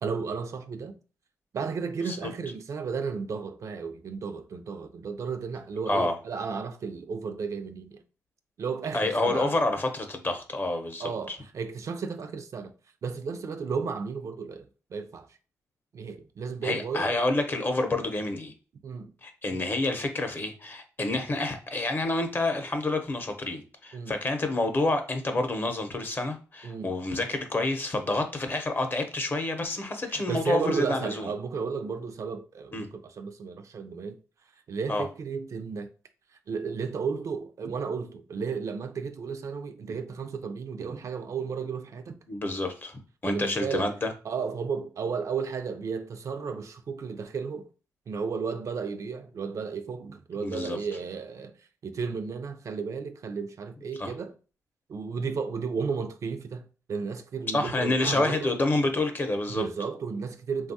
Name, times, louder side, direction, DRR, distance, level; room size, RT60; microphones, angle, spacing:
voice 1, 0.0-1.0 1.5-8.0 8.6-9.5 11.0-12.7 13.0-15.3 15.9-17.2 18.8-19.1 19.5-19.6 23.9-24.1 26.6-26.9 30.0-34.2 34.7-35.9 36.5-42.2 43.3-43.9 44.2-47.7 48.1-51.5 51.8-54.3 54.9-58.5 59.5-60.7, right 5 dB, 55° right, 0.4 m, -33 dB
voice 2, 8.9-11.4 16.6-18.5 19.2-31.3 32.7-32.9 34.9-35.0 42.3-44.1 50.4-50.8 54.0-54.1 57.5-59.6, left 2 dB, 35° left, 0.7 m, -28 dB
3.1 x 2.3 x 2.7 m
cardioid pair, 65°, 6 cm